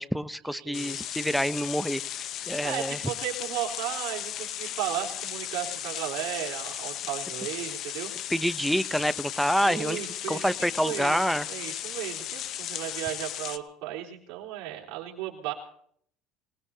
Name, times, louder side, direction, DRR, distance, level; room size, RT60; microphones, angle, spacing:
voice 1, 0.0-3.0 8.3-10.0 10.3-11.5, equal, ahead, 16 dB, 0.6 m, -27 dB
voice 2, 0.5-1.0 2.6-8.1 9.6-11.2 11.5-15.5, right 12 dB, 75° right, -1 dB, 3.8 m, -35 dB
sound 1, 0.7-13.6, left 11 dB, 50° left, 0.7 m, -36 dB
25.0 x 19.0 x 2.8 m, 0.65 s
cardioid pair, 125°, 0 cm